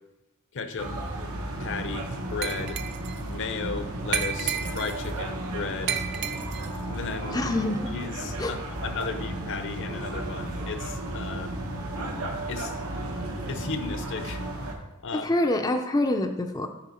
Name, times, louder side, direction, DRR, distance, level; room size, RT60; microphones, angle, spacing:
voice 1, 0.5-1.0 1.6-2.8 3.3-6.0 6.9-7.5 7.9-11.6 12.5-12.8 13.5-14.4 15.0-15.3, left 5 dB, 60° left, 9 dB, 0.6 m, -35 dB
sound 1, 0.8-14.7, right 1 dB, 85° right, 1.2 m, -34 dB
Glass, 2.4-3.2 4.1-5.1 5.9-6.8, right 9 dB, 50° right, 0.4 m, -31 dB
voice 2, 7.3-7.8 8.4-8.5 15.1-16.7, left 1 dB, 20° left, 5 dB, 0.4 m, -25 dB
9.9 x 4.4 x 4.3 m, 1.0 s
head